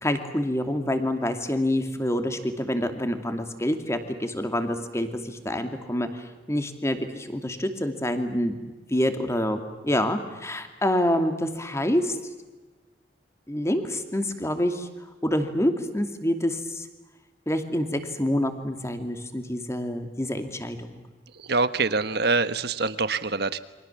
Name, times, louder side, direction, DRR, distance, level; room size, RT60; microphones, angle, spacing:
voice 1, 0.0-6.2 6.5-8.6 8.9-12.2 13.5-14.9 15.2-16.9 17.5-21.0, left 1 dB, 15° left, 7 dB, 2.5 m, -27 dB
voice 2, 21.4-23.6, right 3 dB, 65° right, 12 dB, 1.4 m, -25 dB
29.5 x 25.0 x 7.3 m, 1.2 s
head